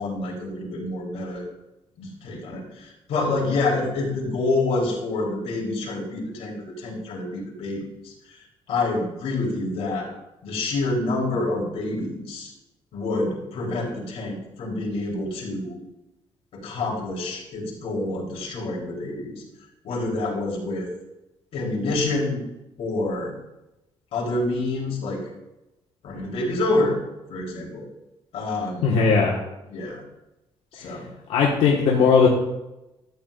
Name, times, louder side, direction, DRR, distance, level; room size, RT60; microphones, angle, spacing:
voice 1, 0.0-1.4 2.0-10.1 10.4-12.5 12.9-15.8 16.5-19.4 19.8-20.9 21.5-22.5 22.8-23.3 24.1-25.3 26.0-27.0 27.3-27.9 28.3-29.0 29.7-30.0 30.7-31.1, left 2 dB, 60° left, -4 dB, 3.4 m, -27 dB
voice 2, 28.8-29.3 31.3-32.3, left 5 dB, 80° left, -4 dB, 1.5 m, -18 dB
13.0 x 8.4 x 2.5 m, 0.95 s
cardioid pair, 165°, 11 cm